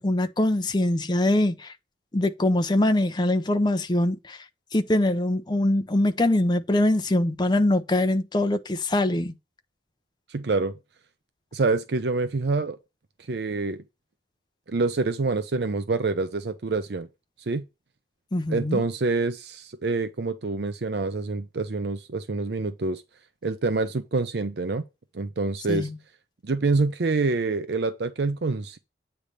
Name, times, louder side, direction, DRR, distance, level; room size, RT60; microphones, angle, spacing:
voice 1, 0.0-1.7 2.1-4.4 4.7-9.3 18.3-18.8 25.7-25.9, left 1 dB, 25° left, 0.6 m, -23 dB
voice 2, 10.3-10.8 11.5-12.8 13.3-13.8 14.7-17.1 17.4-17.6 18.5-23.0 23.4-24.8 25.1-25.9 26.4-28.8, right 3 dB, 65° right, 0.6 m, -26 dB
8.7 x 3.3 x 6.7 m
head